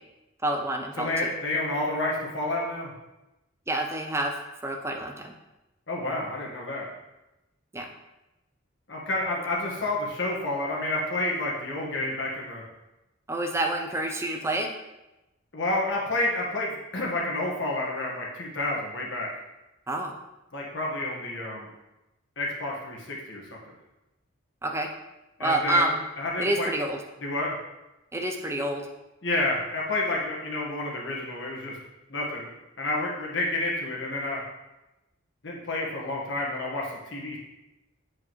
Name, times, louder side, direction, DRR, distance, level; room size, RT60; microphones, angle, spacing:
voice 1, 0.4-1.1 3.7-5.3 7.7-7.9 13.3-14.7 19.9-20.1 24.6-24.9 25.4-26.0 26.4-27.0 28.1-28.8, right 1 dB, 15° right, 3 dB, 0.6 m, -28 dB
voice 2, 1.0-2.9 5.9-6.9 8.9-12.6 15.5-19.3 20.5-21.7 22.4-23.6 25.4-25.9 26.2-26.7 27.2-27.6 29.2-31.8 32.1-32.5 32.8-34.4 35.4-37.4, left 2 dB, 60° left, -3 dB, 1.5 m, -29 dB
7.7 x 4.9 x 3.1 m, 0.99 s
head